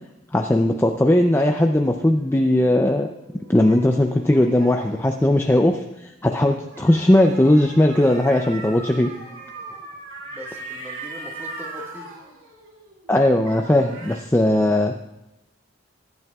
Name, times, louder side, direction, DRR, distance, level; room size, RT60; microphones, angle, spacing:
voice 1, 0.3-3.1 3.5-9.1 13.1-14.9, left 1 dB, 10° left, 3 dB, 0.4 m, -18 dB
sound 1, 2.1-5.7 6.6-13.1 13.4-14.2, right 3 dB, 85° right, 2.6 m, -40 dB
voice 2, 10.2-12.1, left 1 dB, 10° right, -1 dB, 1.6 m, -40 dB
20.5 x 10.5 x 2.4 m, 0.93 s
head